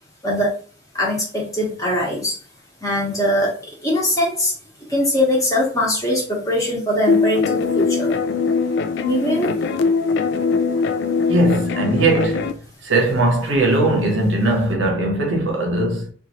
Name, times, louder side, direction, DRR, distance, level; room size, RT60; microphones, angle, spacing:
voice 1, 0.9-2.4 2.8-3.5 3.8-4.5 4.9-8.1 9.0-9.7, left 1 dB, 20° left, 1.0 m, -21 dB
sound 1, 7.1-12.5, left 4 dB, 65° left, 0.3 m, -21 dB
voice 2, 11.3-12.5 12.8-16.1, right 2 dB, 80° right, 0.8 m, -19 dB
2.8 x 2.4 x 2.9 m
head